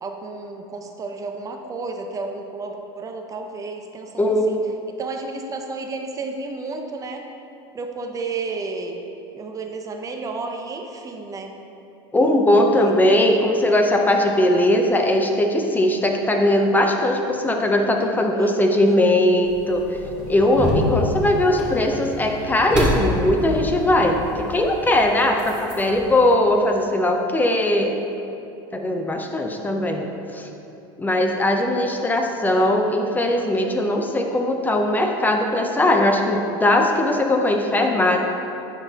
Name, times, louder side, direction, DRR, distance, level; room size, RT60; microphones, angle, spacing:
voice 1, 0.0-4.6 5.0-7.2 7.7-9.0 9.3-11.6 12.9-13.0 18.0-19.2, right 3 dB, 25° right, 4 dB, 0.6 m, -32 dB
voice 2, 4.2-4.6 12.1-20.0 20.3-28.0 28.7-30.5 31.0-38.2, left 1 dB, 15° left, 3 dB, 0.6 m, -19 dB
sound 1, 19.4-26.3, left 1 dB, 5° right, 1.6 m, -28 dB
9.5 x 6.0 x 2.9 m, 2.9 s
supercardioid pair, 110°, 13 cm